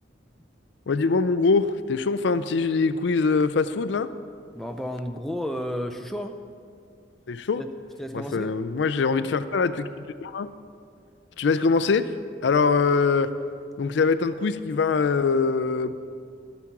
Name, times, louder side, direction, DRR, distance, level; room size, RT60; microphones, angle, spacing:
voice 1, 0.9-4.1 7.3-7.6 8.1-10.5 11.4-12.1 12.4-13.3 13.8-15.9, left 4 dB, 70° left, 13 dB, 0.4 m, -23 dB
voice 2, 4.5-6.4 7.6-7.7 8.0-8.5, equal, ahead, 4 dB, 0.5 m, -32 dB
12.0 x 8.4 x 5.9 m, 2.3 s
head